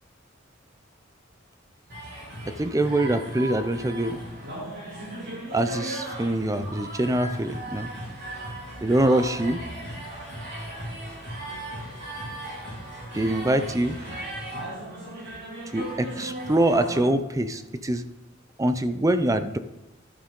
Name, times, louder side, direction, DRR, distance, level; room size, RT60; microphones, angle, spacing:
sound 1, 1.9-17.0, right 1 dB, 60° right, 3.6 m, -37 dB
voice 1, 2.5-4.2 5.5-7.9 8.8-9.6 13.1-14.0 15.7-18.0 18.6-19.6, right 1 dB, 15° right, 10 dB, 0.5 m, -24 dB
11.5 x 8.9 x 3.7 m, 0.98 s
head